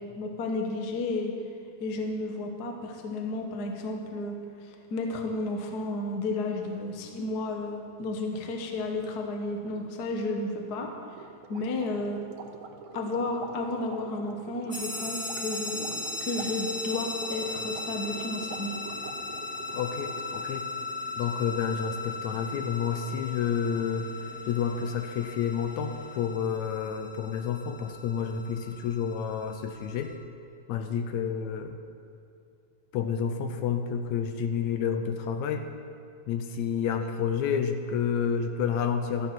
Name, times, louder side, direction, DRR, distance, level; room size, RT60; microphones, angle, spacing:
voice 1, 0.2-1.3 1.8-4.4 4.6-10.9 11.5-12.2 12.9-18.8, left 2 dB, 55° left, 3 dB, 1.1 m, -32 dB
sound 1, 11.2-20.6, right 6 dB, 75° right, 2.3 m, -44 dB
sound 2, 14.7-30.1, left 3 dB, 35° left, 1.4 m, -38 dB
sound 3, 16.0-26.4, right 1 dB, 15° left, 0.6 m, -52 dB
voice 2, 19.7-20.7 21.2-30.1 30.7-31.8 32.9-35.7 36.3-39.3, left 7 dB, 75° left, 7 dB, 1.9 m, -30 dB
13.5 x 10.0 x 6.0 m, 2.4 s
omnidirectional pair, 3.4 m